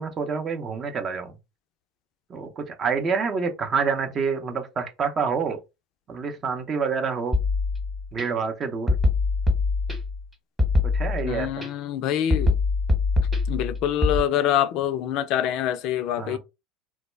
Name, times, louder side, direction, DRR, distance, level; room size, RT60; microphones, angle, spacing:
voice 1, 0.0-1.3 2.3-5.6 6.1-7.4 8.1-9.0 10.8-11.7 16.2-16.4, right 5 dB, 35° right, 0.6 m, -27 dB
sound 1, 7.3-8.2 8.9-10.2 10.6-11.7 12.3-14.2, left 3 dB, 10° right, 1.0 m, -23 dB
voice 2, 11.2-12.6 13.5-16.4, left 10 dB, 60° left, 0.3 m, -25 dB
2.2 x 2.0 x 3.1 m
hypercardioid pair, 85°, 0 cm